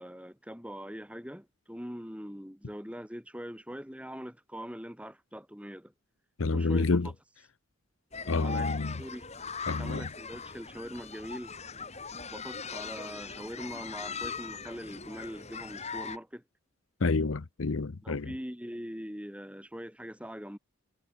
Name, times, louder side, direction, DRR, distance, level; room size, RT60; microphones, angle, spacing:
voice 1, 0.0-5.9 6.5-6.9 8.3-8.7 9.0-9.3 9.8-11.5 12.3-16.4 18.0-20.6, equal, 5° right, 6.7 m, -42 dB
voice 2, 6.4-7.1 8.3-9.0 9.7-10.1 17.0-18.3, left 3 dB, 75° left, 0.8 m, -28 dB
sound 1, 8.1-16.2, left 5 dB, 30° left, 6.6 m, -40 dB
head